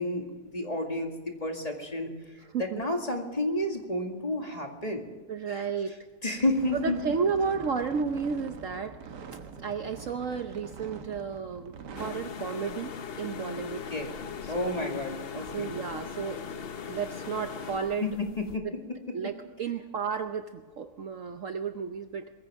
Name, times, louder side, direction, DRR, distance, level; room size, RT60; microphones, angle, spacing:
voice 1, 0.0-5.1 5.5-5.6 5.9-6.0 6.2-7.0 13.9-14.2 14.5-15.7 18.0-18.6, left 1 dB, 25° left, 2 dB, 2.1 m, -31 dB
voice 2, 5.3-6.0 6.8-9.0 9.6-11.7 12.0-12.9 13.2-13.9 14.5-14.9 15.3-16.4 16.9-18.0 19.1-22.3, right 5 dB, 55° right, 7 dB, 1.1 m, -32 dB
sound 1, 6.4-12.1, right 6 dB, 90° right, 1.8 m, -44 dB
sound 2, 11.9-18.6, left 6 dB, 50° left, 0.8 m, -39 dB
22.0 x 15.5 x 3.6 m, 1.3 s
omnidirectional pair, 1.8 m